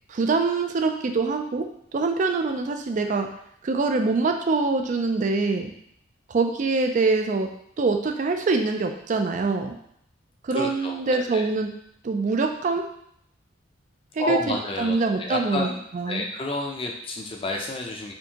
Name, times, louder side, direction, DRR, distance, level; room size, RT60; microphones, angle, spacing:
voice 1, 0.1-1.7 1.9-3.3 3.6-5.7 6.3-7.5 7.8-9.8 10.4-11.7 12.0-12.8 14.2-15.7 15.9-16.3, right 3 dB, 40° right, 5 dB, 0.3 m, -24 dB
voice 2, 10.5-11.4 14.2-18.1, left 2 dB, 30° left, 1 dB, 0.5 m, -30 dB
4.4 x 2.7 x 2.8 m, 0.71 s
head